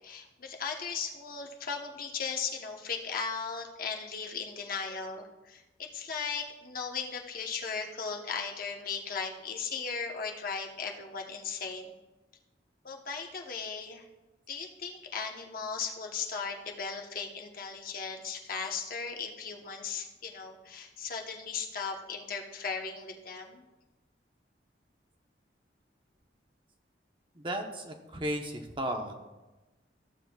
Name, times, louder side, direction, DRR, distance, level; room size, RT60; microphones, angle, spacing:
voice 1, 0.0-11.9 12.8-14.0 14.5-23.7, left 5 dB, 55° left, 2 dB, 0.9 m, -37 dB
voice 2, 27.3-29.1, right 1 dB, 30° right, 4 dB, 0.8 m, -34 dB
14.5 x 7.6 x 2.3 m, 1.1 s
head